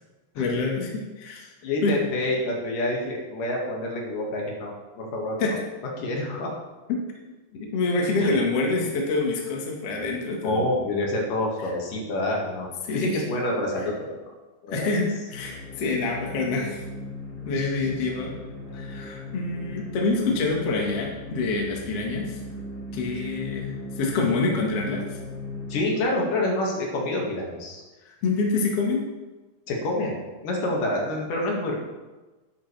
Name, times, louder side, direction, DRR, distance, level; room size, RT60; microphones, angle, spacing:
voice 1, 0.4-1.5 1.8-1.9 5.4-5.5 7.5-10.7 12.8-13.1 14.7-16.8 17.5-18.3 18.7-22.4 22.9-25.0 28.1-29.1, left 3 dB, 55° left, -1 dB, 2.3 m, -26 dB
voice 2, 1.6-5.6 6.0-6.6 8.2-8.3 10.4-14.2 14.6-14.9 17.5-17.7 25.7-27.8 29.7-31.8, left 1 dB, 75° left, -2 dB, 3.4 m, -27 dB
sound 1, 15.3-26.0, left 1 dB, 30° left, 2.5 m, -38 dB
12.5 x 10.5 x 3.4 m, 1.2 s
omnidirectional pair, 3.9 m